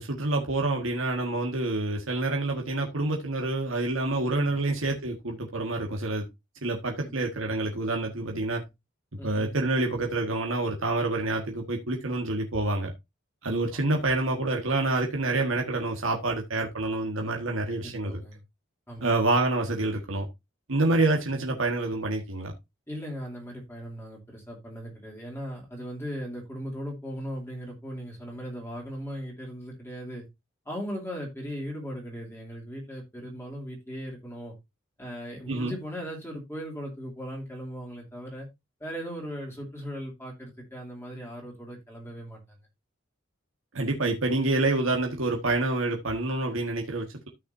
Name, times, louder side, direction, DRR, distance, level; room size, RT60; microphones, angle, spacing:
voice 1, 0.0-6.2 6.6-8.6 9.2-12.9 13.4-18.2 19.0-20.3 20.7-22.5 35.5-35.7 43.7-47.3, right 2 dB, 75° right, 1.6 m, -27 dB
voice 2, 9.2-9.5 13.7-13.8 17.8-18.4 18.9-19.1 22.9-30.2 30.6-34.5 35.0-38.5 38.8-42.6, equal, 10° left, 2.8 m, -38 dB
14.0 x 5.9 x 2.6 m
head